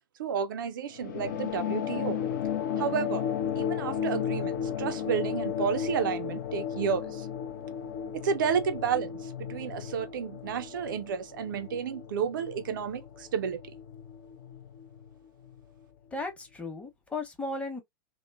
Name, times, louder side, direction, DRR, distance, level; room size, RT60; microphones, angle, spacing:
voice 1, 0.2-2.2 2.8-3.3 3.6-7.3 8.1-13.8, right 7 dB, 65° right, 0.4 m, -31 dB
sound 1, 1.0-15.8, left 8 dB, 55° left, 0.5 m, -34 dB
voice 2, 16.1-17.8, left 2 dB, 10° left, 0.8 m, -35 dB
2.9 x 2.1 x 2.4 m
figure-of-eight pair, 95°, 12 cm